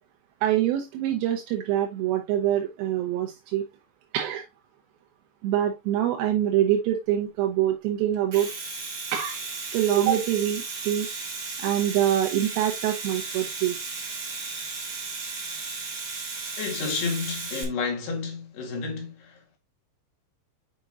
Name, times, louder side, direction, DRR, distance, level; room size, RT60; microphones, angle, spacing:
voice 1, 0.4-3.6 4.1-4.5 5.4-8.5 9.1-9.4 9.7-11.1 11.6-13.8, right 11 dB, 80° right, 2.4 m, -25 dB
Domestic sounds home sounds, 8.1-17.6, right 4 dB, 40° right, 2.4 m, -35 dB
voice 2, 16.6-19.6, left 4 dB, 70° left, 3.9 m, -31 dB
8.3 x 5.1 x 2.4 m
omnidirectional pair, 4.8 m